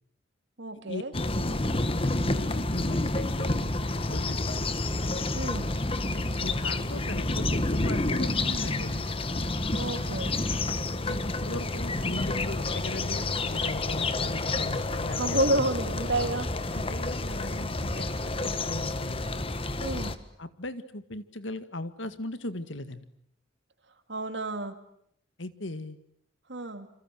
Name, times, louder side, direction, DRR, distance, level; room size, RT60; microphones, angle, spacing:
voice 1, 0.6-1.1 5.3-5.7 9.7-10.4 15.2-16.5 19.8-20.2 24.1-24.8 26.5-26.9, right 2 dB, 60° right, 8 dB, 2.7 m, -30 dB
sound 1, 1.1-20.2, left 2 dB, 30° left, 1.4 m, -29 dB
voice 2, 2.0-3.7 4.1-4.7 6.1-9.1 11.1-15.4 16.7-18.1 18.4-19.3 20.4-23.1 25.4-26.0, left 2 dB, 70° left, 12 dB, 1.9 m, -38 dB
28.0 x 27.0 x 7.7 m, 0.69 s
head